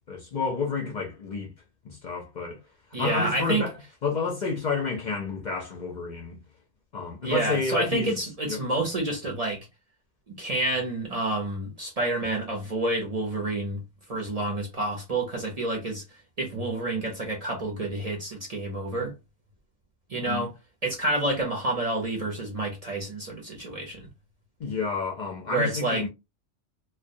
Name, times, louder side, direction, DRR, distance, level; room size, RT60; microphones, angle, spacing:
voice 1, 0.1-1.5 1.8-2.6 3.0-3.7 4.0-6.4 6.9-8.2 8.5-8.6 20.2-20.5 24.6-26.1, left 4 dB, 50° left, 0.6 m, -30 dB
voice 2, 2.9-3.6 7.2-9.7 10.3-13.8 14.1-16.0 16.4-19.1 20.1-20.5 20.8-24.1 25.5-26.0, right 2 dB, 40° right, 0.6 m, -29 dB
2.2 x 2.2 x 2.6 m
omnidirectional pair, 1.2 m